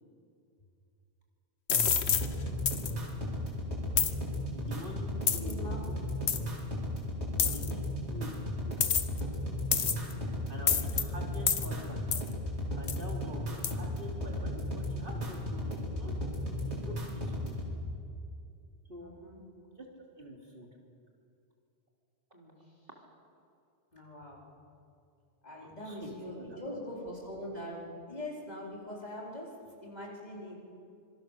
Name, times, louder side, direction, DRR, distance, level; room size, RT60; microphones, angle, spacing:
sound 1, 1.7-2.3 2.7-2.9 4.0-4.1 5.3-5.5 6.3-6.4 7.4-7.7 8.8-9.2 9.7-10.1 10.7-11.0 11.5-11.7 12.1-12.3 12.9-13.0 13.6-13.7, left 7 dB, 75° left, 1.3 m, -27 dB
sound 2, 1.7-17.7, left 1 dB, 85° right, 4.4 m, -35 dB
voice 1, 4.5-5.9 7.4-7.8 8.1-8.8 10.5-12.1 12.8-16.1 16.8-17.6 18.9-19.1 19.8-19.9 20.2-20.7 25.8-26.8, equal, 50° right, 0 dB, 3.3 m, -46 dB
voice 2, 5.4-5.8 7.3-7.6 10.0-10.4 19.0-19.4 22.3-22.5 23.9-24.5 25.4-27.8 28.1-29.5 29.8-30.5, left 1 dB, 40° left, -4 dB, 4.9 m, -43 dB
25.5 x 22.5 x 6.8 m, 2.5 s
omnidirectional pair, 1.1 m